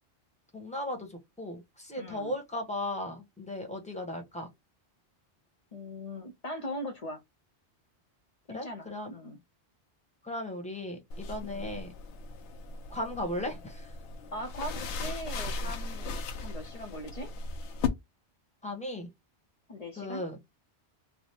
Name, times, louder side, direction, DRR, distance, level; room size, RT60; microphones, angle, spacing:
voice 1, 0.5-4.5 8.5-9.1 10.2-11.9 12.9-13.9 18.6-19.1 20.0-20.4, left 1 dB, 5° left, 0.9 m, -36 dB
voice 2, 2.0-2.3 5.7-7.2 8.5-9.4 11.4-11.8 14.3-17.3 19.7-20.2, left 1 dB, 40° left, 0.6 m, -40 dB
sound 1, 11.1-17.9, left 4 dB, 80° left, 0.9 m, -37 dB
3.3 x 2.0 x 4.2 m
omnidirectional pair, 1.2 m